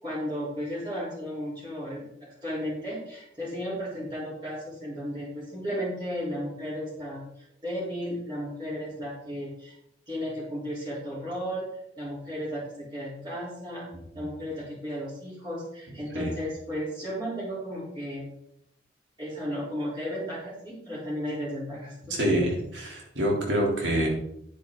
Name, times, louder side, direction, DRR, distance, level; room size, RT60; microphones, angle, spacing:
voice 1, 0.0-2.1 2.4-7.2 7.6-9.7 10.1-11.6 12.0-12.6 12.9-13.9 14.1-18.2 19.2-22.4, equal, 25° right, -9 dB, 4.1 m, -34 dB
voice 2, 22.1-22.5 22.7-24.1, right 1 dB, 80° right, -1 dB, 3.8 m, -26 dB
10.0 x 10.0 x 4.0 m, 0.77 s
head